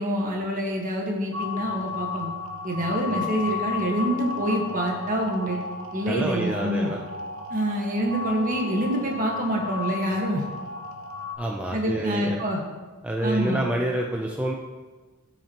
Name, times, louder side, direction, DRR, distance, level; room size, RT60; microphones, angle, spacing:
voice 1, 0.0-2.3 2.6-5.6 5.9-6.9 7.5-10.4 11.7-12.6 13.2-13.6, right 1 dB, 40° right, 0 dB, 1.5 m, -26 dB
sound 1, 1.3-11.3, left 5 dB, 80° right, 1.0 m, -34 dB
voice 2, 6.0-7.0 11.4-12.4 13.0-14.5, right 1 dB, 5° right, -1 dB, 0.5 m, -27 dB
14.5 x 5.8 x 3.0 m, 1.3 s
head